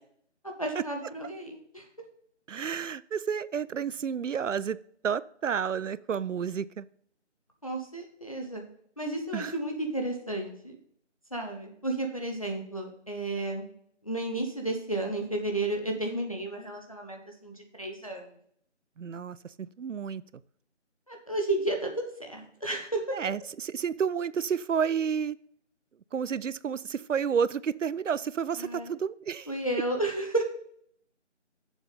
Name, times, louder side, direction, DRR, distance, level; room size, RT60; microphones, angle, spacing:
voice 1, 0.6-1.9 7.6-8.6 9.0-10.8 11.3-13.6 14.0-18.4 21.1-23.3 28.6-28.9 29.5-30.5, right 2 dB, 30° left, 2 dB, 0.8 m, -32 dB
voice 2, 2.5-4.8 5.0-6.9 9.3-9.5 19.0-20.2 23.1-25.4 26.1-29.5, right 7 dB, 90° right, 19 dB, 0.5 m, -30 dB
7.1 x 5.6 x 5.2 m, 0.66 s
figure-of-eight pair, 165°, 36 cm